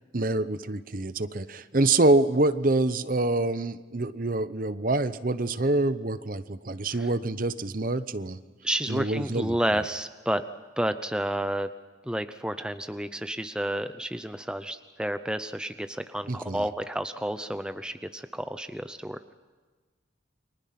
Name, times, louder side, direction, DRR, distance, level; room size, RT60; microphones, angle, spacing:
voice 1, 0.1-8.4 8.9-9.6 16.3-16.7, right 2 dB, 45° right, 13 dB, 0.9 m, -26 dB
voice 2, 8.6-10.4 10.8-11.7 12.1-19.2, right 1 dB, 5° right, 9 dB, 0.6 m, -30 dB
29.5 x 24.0 x 5.9 m, 1.4 s
head